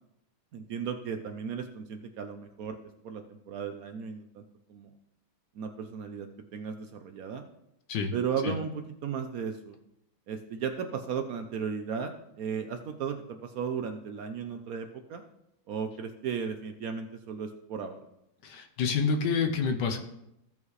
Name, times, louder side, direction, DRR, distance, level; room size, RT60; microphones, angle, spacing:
voice 1, 0.5-2.8 3.0-4.4 4.7-4.9 5.6-7.4 8.1-9.8 10.3-12.1 12.4-15.2 15.7-18.0, right 6 dB, 75° right, 6 dB, 0.8 m, -35 dB
voice 2, 18.4-20.0, left 5 dB, 65° left, 5 dB, 1.3 m, -28 dB
15.5 x 5.2 x 3.2 m, 0.83 s
omnidirectional pair, 2.2 m